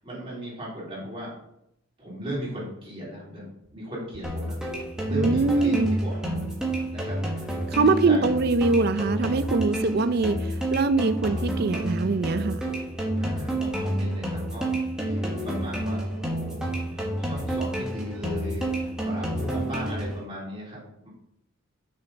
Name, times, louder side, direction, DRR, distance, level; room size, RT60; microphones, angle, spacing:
voice 1, 0.0-1.3 2.0-4.6 5.1-6.4 6.9-7.2 8.0-8.2 13.2-14.8 15.1-21.1, equal, 25° right, -6 dB, 3.2 m, -36 dB
sound 1, 4.2-20.2, right 1 dB, 5° right, 1.3 m, -29 dB
voice 2, 5.1-6.0 7.7-10.4 10.7-12.6, right 3 dB, 50° right, 12 dB, 0.4 m, -23 dB
6.7 x 5.8 x 4.0 m, 0.79 s
head